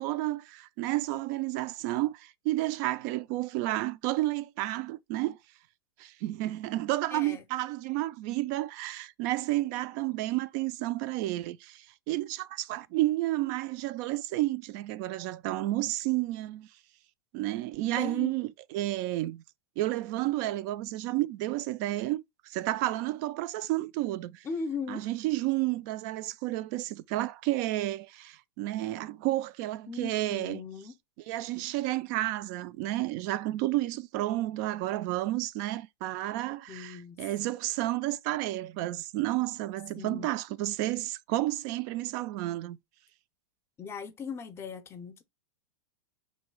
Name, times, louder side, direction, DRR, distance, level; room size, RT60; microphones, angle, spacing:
voice 1, 0.0-5.4 6.0-16.7 17.3-19.4 19.8-24.4 24.9-30.6 31.3-42.8, right 16 dB, 45° right, 0.4 m, -31 dB
voice 2, 7.1-7.4 18.0-18.3 24.4-25.1 29.9-30.9 36.7-37.2 40.0-40.3 43.8-45.2, left 5 dB, 20° left, 0.6 m, -38 dB
3.1 x 2.7 x 4.5 m
hypercardioid pair, 130°, 14 cm